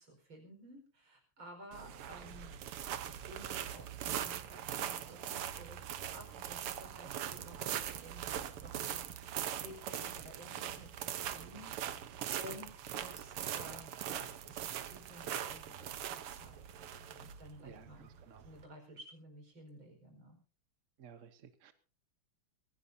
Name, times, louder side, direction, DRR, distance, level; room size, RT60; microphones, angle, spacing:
voice 1, 0.0-2.6 3.1-18.1 18.4-20.4, equal, 65° right, 3 dB, 5.7 m, -54 dB
sound 1, 1.7-18.6, right 10 dB, 85° right, 1.9 m, -41 dB
voice 2, 17.6-18.4 21.0-21.7, right 7 dB, 45° right, 10 dB, 1.1 m, -54 dB
24.0 x 17.0 x 2.8 m, 0.37 s
omnidirectional pair, 2.4 m